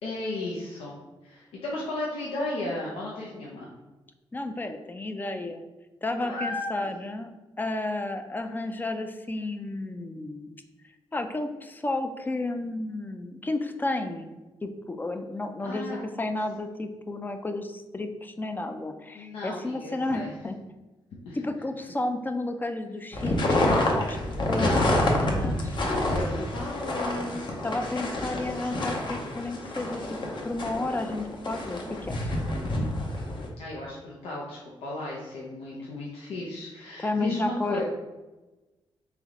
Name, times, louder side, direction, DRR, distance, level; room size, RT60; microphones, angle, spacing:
voice 1, 0.0-1.0 1.2-3.7 6.2-6.7 15.6-16.0 19.1-20.3 21.3-21.4 25.8-27.4 33.6-37.8, left 2 dB, 90° left, -4 dB, 0.7 m, -34 dB
voice 2, 4.3-5.6 6.0-7.3 7.6-10.6 11.1-14.4 14.6-20.6 21.3-24.2 24.5-25.7 26.4-26.5 27.6-30.0 30.4-31.8 32.1-32.3 37.0-37.8, left 2 dB, 20° left, 7 dB, 0.4 m, -32 dB
sound 1, 23.1-33.5, left 1 dB, 55° left, 0.8 m, -28 dB
3.3 x 3.0 x 3.6 m, 1.1 s
cardioid pair, 80°, 10 cm